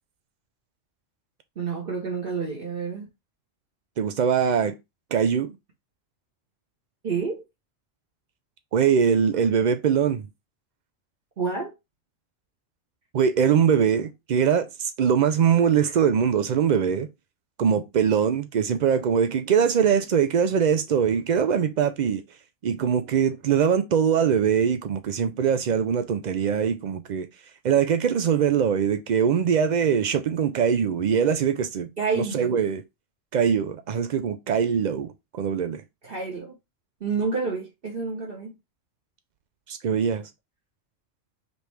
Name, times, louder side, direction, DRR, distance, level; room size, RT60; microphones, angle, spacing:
voice 1, 1.6-3.1 7.0-7.3 11.4-11.7 32.0-32.6 36.0-36.5 37.0-38.5, right 5 dB, 50° right, 1.1 m, -29 dB
voice 2, 4.0-4.7 5.1-5.5 8.7-10.3 13.1-17.1 17.6-22.2 22.6-27.3 27.6-31.9 32.2-32.8 33.3-35.8 39.7-40.2, right 7 dB, 85° right, 0.4 m, -22 dB
5.2 x 3.0 x 3.2 m
omnidirectional pair, 1.3 m